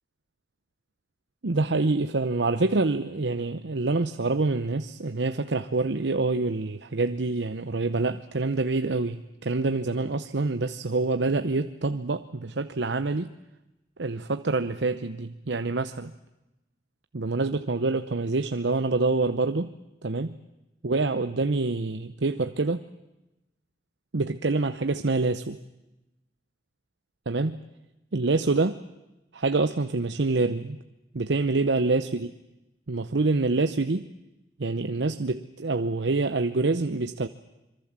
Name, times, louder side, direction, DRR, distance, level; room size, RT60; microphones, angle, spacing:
voice 1, 1.4-13.3 14.0-16.1 17.1-19.7 20.0-20.4 20.8-22.8 24.1-25.6 27.3-27.6 28.1-28.8 29.3-30.8 31.1-32.3 32.9-34.1 34.6-37.3, right 3 dB, 85° right, 10 dB, 0.8 m, -26 dB
25.5 x 23.5 x 7.5 m, 0.97 s
head